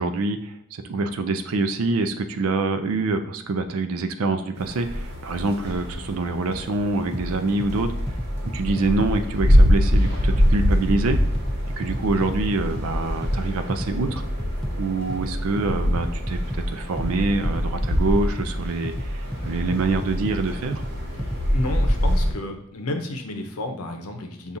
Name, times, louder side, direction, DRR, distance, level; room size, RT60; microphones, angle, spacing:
voice 1, 0.0-7.9 8.5-11.2 11.8-14.2 14.8-20.8, right 3 dB, 70° right, 8 dB, 0.4 m, -25 dB
sound 1, 4.5-22.3, equal, 50° right, 1.1 m, -25 dB
sound 2, 7.1-22.1, equal, ahead, 0.4 m, -31 dB
voice 2, 21.2-24.6, left 1 dB, 85° left, 5 dB, 0.6 m, -31 dB
6.9 x 2.4 x 2.6 m, 0.72 s
head